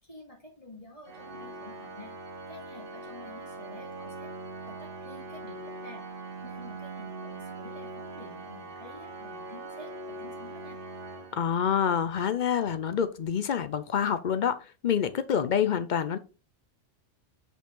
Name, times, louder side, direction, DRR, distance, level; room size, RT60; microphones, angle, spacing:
voice 1, 0.0-2.1 2.5-4.3 4.6-6.0 6.4-10.8, left 1 dB, 30° left, 2.4 m, -49 dB
Organ, 1.1-12.0, right 2 dB, 50° right, 1.0 m, -42 dB
voice 2, 11.4-14.6 14.8-16.2, left 8 dB, 55° left, 0.5 m, -27 dB
5.5 x 5.0 x 3.8 m
omnidirectional pair, 1.3 m